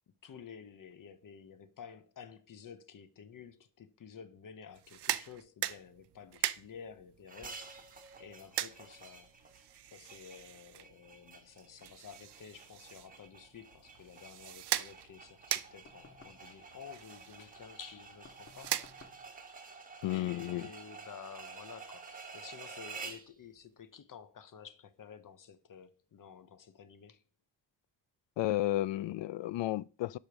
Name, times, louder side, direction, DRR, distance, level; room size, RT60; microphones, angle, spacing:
voice 1, 0.2-7.9 8.2-9.3 9.9-18.8 20.1-27.2, left 7 dB, 50° left, 0.9 m, -51 dB
sound 1, 4.7-19.4, right 13 dB, 65° right, 0.7 m, -41 dB
sound 2, 7.3-23.3, right 4 dB, 20° right, 1.5 m, -51 dB
sound 3, 15.8-16.5 18.2-19.3, left 4 dB, 30° left, 1.5 m, -57 dB
voice 2, 20.0-20.7 28.4-30.2, left 15 dB, 80° left, 0.5 m, -32 dB
11.5 x 5.2 x 6.1 m
wide cardioid pair, 155°, 43 cm